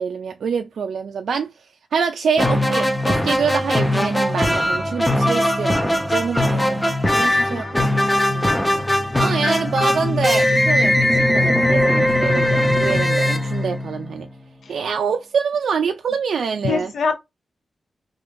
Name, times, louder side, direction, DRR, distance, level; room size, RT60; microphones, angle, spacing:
voice 1, 0.0-1.5 1.9-5.8 6.1-6.8 7.1-7.9 8.3-8.6 9.2-14.3 14.7-16.9, right 6 dB, 85° right, 0.3 m, -25 dB
sound 1, 2.4-14.2, left 1 dB, 10° left, 0.5 m, -19 dB
voice 2, 7.4-7.8 16.6-17.1, left 5 dB, 80° left, 0.6 m, -24 dB
2.5 x 2.5 x 3.6 m
cardioid pair, 85°, 0 cm